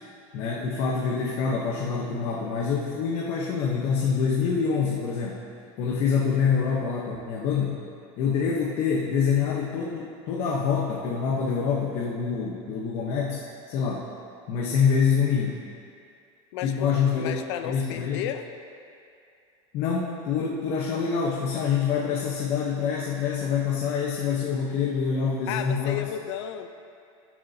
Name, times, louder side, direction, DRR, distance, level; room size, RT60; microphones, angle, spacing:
voice 1, 0.3-5.4 5.8-7.8 8.2-14.1 14.5-15.6 16.6-17.3 17.6-18.3 19.7-26.1, left 6 dB, 45° left, -3 dB, 1.1 m, -26 dB
voice 2, 16.5-16.9 17.2-18.4 25.5-26.7, left 10 dB, 70° left, 8 dB, 0.7 m, -33 dB
20.0 x 7.5 x 2.9 m, 2.4 s
cardioid pair, 175°, 15 cm